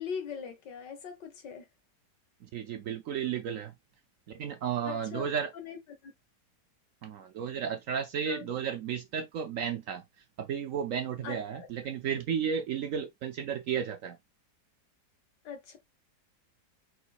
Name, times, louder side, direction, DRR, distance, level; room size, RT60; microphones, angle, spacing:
voice 1, 0.0-1.7 4.8-6.1 8.2-8.5 11.2-11.7 15.4-15.8, left 7 dB, 85° left, 1.9 m, -41 dB
voice 2, 2.5-3.7 4.3-5.5 7.0-10.0 10.4-14.2, right 8 dB, 65° right, 0.8 m, -33 dB
4.9 x 4.3 x 2.4 m
omnidirectional pair, 1.8 m